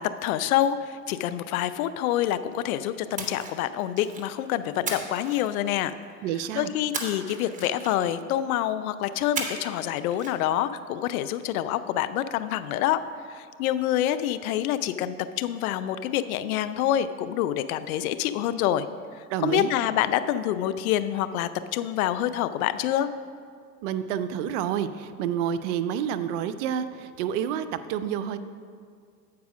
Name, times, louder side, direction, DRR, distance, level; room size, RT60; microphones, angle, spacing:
voice 1, 0.0-5.9 6.5-13.0 13.3-18.9 19.1-23.1, left 11 dB, 60° left, 12 dB, 0.5 m, -27 dB
Splash splatter, 3.2-4.3 4.9-6.0 6.9-8.2 9.4-9.8 10.1-10.3, right 4 dB, 15° right, 1.0 m, -35 dB
voice 2, 6.2-6.7 19.3-19.7 23.8-28.4, right 9 dB, 50° right, 12 dB, 0.5 m, -29 dB
8.1 x 4.8 x 6.0 m, 2.2 s
hypercardioid pair, 90°, 48 cm